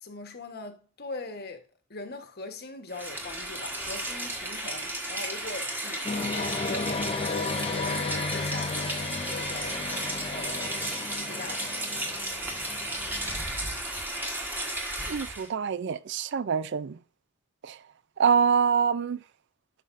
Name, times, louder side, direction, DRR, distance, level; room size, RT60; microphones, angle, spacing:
voice 1, 0.0-7.2 7.5-9.8 10.3-10.8 11.1-11.8, left 3 dB, 45° left, 1.2 m, -41 dB
Rain, 2.9-15.5, right 1 dB, 10° right, 1.2 m, -34 dB
sound 1, 6.0-13.4, left 4 dB, 25° left, 0.4 m, -34 dB
voice 2, 15.1-17.0 17.6-17.8 18.2-19.2, right 6 dB, 50° right, 0.4 m, -25 dB
11.0 x 5.6 x 2.5 m
head